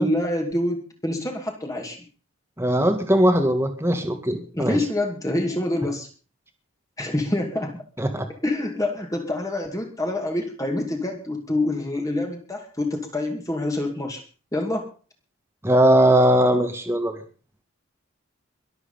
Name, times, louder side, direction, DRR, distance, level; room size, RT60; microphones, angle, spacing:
voice 1, 0.0-2.0 4.5-6.1 7.0-7.8 8.4-14.2 14.5-14.9, left 1 dB, 15° left, 2 dB, 2.5 m, -26 dB
voice 2, 2.6-4.8 8.0-8.3 15.6-17.2, right 1 dB, 10° right, 5 dB, 1.8 m, -19 dB
22.5 x 8.0 x 5.6 m, 0.38 s
head